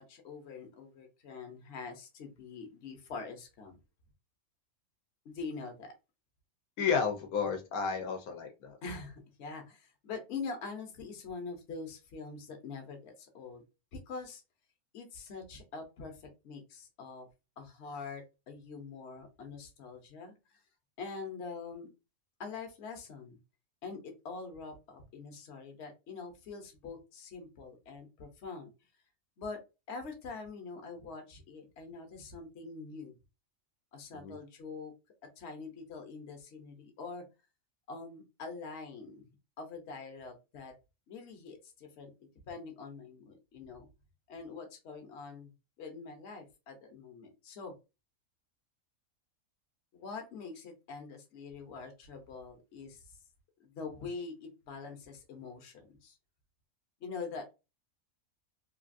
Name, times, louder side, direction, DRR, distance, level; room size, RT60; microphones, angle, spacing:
voice 1, 0.0-3.8 5.2-5.9 8.8-13.6 13.9-14.4 14.9-17.3 17.6-20.3 21.0-21.9 22.4-23.4 23.8-28.7 29.4-29.6 29.9-33.1 33.9-34.9 35.4-37.2 37.9-39.2 39.6-40.7 41.1-43.9 44.3-45.5 45.8-47.7 49.9-53.0 53.6-56.2 57.0-57.5, left 4 dB, 55° left, 4 dB, 1.0 m, -44 dB
voice 2, 6.8-8.8 34.1-34.4, left 6 dB, 85° left, 4 dB, 1.1 m, -32 dB
3.2 x 2.4 x 2.5 m, 0.27 s
omnidirectional pair, 1.5 m